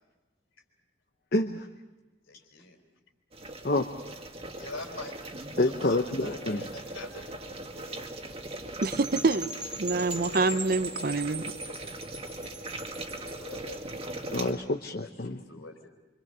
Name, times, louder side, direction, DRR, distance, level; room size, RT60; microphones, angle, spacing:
voice 1, 1.3-1.7 3.6-3.9 5.6-6.7 14.3-15.4, left 2 dB, 50° left, 5 dB, 0.9 m, -28 dB
voice 2, 2.3-2.8 4.6-7.4 7.7-8.0 11.7-12.8 13.2-14.3 15.0-15.9, left 2 dB, 85° left, 2 dB, 3.8 m, -46 dB
sound 1, 3.3-14.5, right 2 dB, 30° right, 1.9 m, -40 dB
Percussion / Wind chime, 8.8-13.5, right 2 dB, 5° right, 1.2 m, -40 dB
voice 3, 8.8-9.5 9.8-11.4, right 3 dB, 50° right, 13 dB, 0.7 m, -26 dB
26.0 x 25.5 x 6.8 m, 1.1 s
head